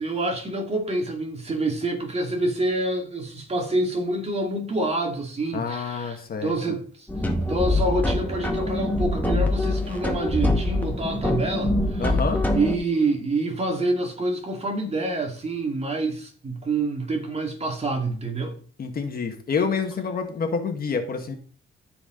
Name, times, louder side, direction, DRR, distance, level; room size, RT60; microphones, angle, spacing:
voice 1, 0.0-7.1 7.5-12.1 12.5-18.6, right 2 dB, 30° right, 2.6 m, -27 dB
voice 2, 5.5-6.5 12.0-12.4 18.8-21.4, left 5 dB, 50° left, 1.8 m, -27 dB
sound 1, 7.1-12.7, left 1 dB, 10° left, 1.8 m, -24 dB
14.0 x 5.0 x 3.9 m
cardioid pair, 90°, 20 cm